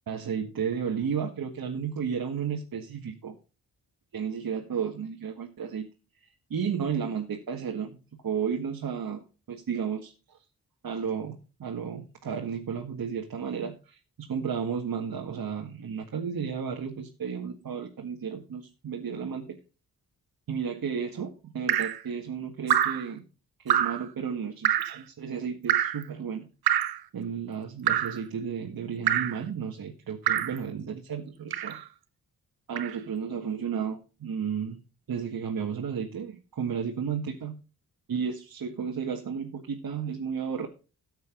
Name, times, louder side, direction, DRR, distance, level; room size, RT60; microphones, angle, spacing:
voice 1, 0.1-3.3 4.1-5.9 6.5-9.2 9.5-10.1 10.8-19.6 20.5-23.2 23.6-26.5 27.1-31.8 32.7-34.8 35.1-37.6 38.1-40.7, right 7 dB, 65° right, 1 dB, 1.9 m, -33 dB
Drip, 21.7-22.0 22.7-23.1 23.7-24.0 24.6-25.0 25.7-26.0 26.7-27.0 27.9-28.2 29.1-29.4 30.3-30.6 31.5-31.8 32.8-32.9, right 10 dB, 90° right, 0.9 m, -25 dB
13.5 x 8.1 x 3.9 m, 0.33 s
cardioid pair, 80°, 37 cm